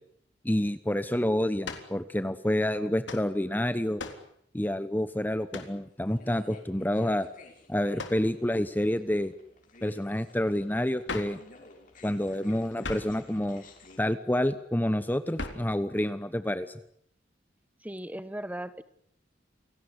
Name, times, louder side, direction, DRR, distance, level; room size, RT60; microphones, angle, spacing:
voice 1, 0.4-4.0 4.5-7.3 7.7-9.3 9.8-11.4 12.0-13.6 14.0-16.7, left 1 dB, 10° left, 12 dB, 1.0 m, -28 dB
sound 1, 1.6-2.0 3.1-3.3 4.0-4.3 5.5-5.8 8.0-8.3 11.1-11.4 12.8-13.2 15.4-15.7, left 3 dB, 75° left, 3.8 m, -38 dB
sound 2, 5.6-14.0, left 2 dB, 45° left, 5.9 m, -53 dB
voice 2, 17.8-18.8, right 1 dB, 10° right, 14 dB, 1.3 m, -37 dB
29.0 x 18.0 x 9.9 m, 0.69 s
head